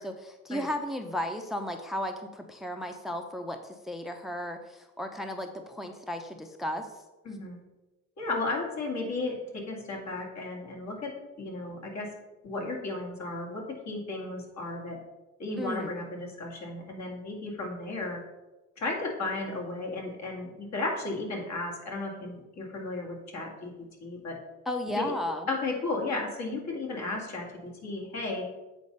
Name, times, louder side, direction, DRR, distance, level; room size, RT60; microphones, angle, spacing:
voice 1, 0.0-6.9 15.6-15.9 24.7-25.5, left 1 dB, ahead, 6 dB, 0.6 m, -34 dB
voice 2, 7.2-7.6 8.2-12.1 12.4-15.0 15.4-18.2 18.8-23.7 24.0-24.4 25.0-25.1 25.5-28.5, left 2 dB, 65° left, -1 dB, 2.3 m, -34 dB
8.2 x 4.1 x 5.4 m, 1.1 s
cardioid pair, 90°, 30 cm